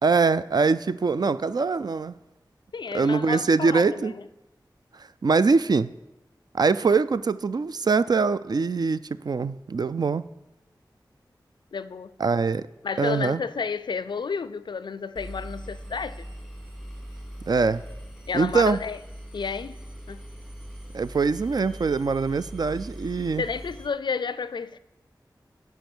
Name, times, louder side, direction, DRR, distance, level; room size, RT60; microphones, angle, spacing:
voice 1, 0.0-2.1 2.9-4.1 5.2-5.9 6.5-10.2 12.2-12.7 13.0-13.4 17.5-17.8 18.3-18.8 20.9-23.4, right 4 dB, 55° right, 0.3 m, -23 dB
voice 2, 2.7-4.2 11.7-12.1 12.8-16.3 18.3-19.0 19.3-19.8 20.1-20.2 23.4-24.8, left 5 dB, 70° left, 0.4 m, -31 dB
Engine, 15.1-23.9, equal, 5° right, 1.5 m, -41 dB
10.5 x 4.6 x 6.1 m
cardioid pair, 40°, 8 cm